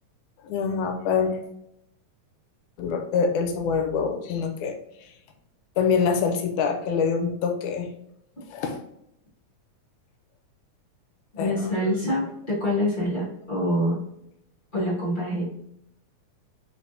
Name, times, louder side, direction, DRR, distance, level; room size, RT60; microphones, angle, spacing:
voice 1, 0.5-1.4 2.8-4.7 5.8-7.9 8.5-8.8 11.4-11.7, left 5 dB, 85° left, 4 dB, 2.1 m, -25 dB
voice 2, 11.3-14.0 14.7-15.5, equal, 25° left, -9 dB, 1.0 m, -25 dB
5.0 x 3.3 x 2.7 m, 0.78 s
omnidirectional pair, 3.5 m